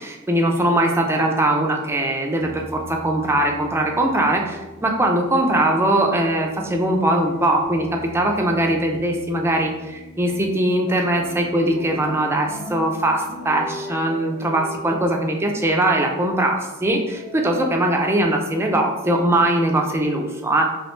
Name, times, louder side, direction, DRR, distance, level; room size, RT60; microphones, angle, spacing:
voice 1, 0.0-7.9 8.1-20.7, right 1 dB, 10° right, 1 dB, 0.4 m, -21 dB
sound 1, 2.4-16.4 17.0-18.1, left 1 dB, 45° left, 0.6 m, -40 dB
3.1 x 2.8 x 3.1 m, 1.1 s
head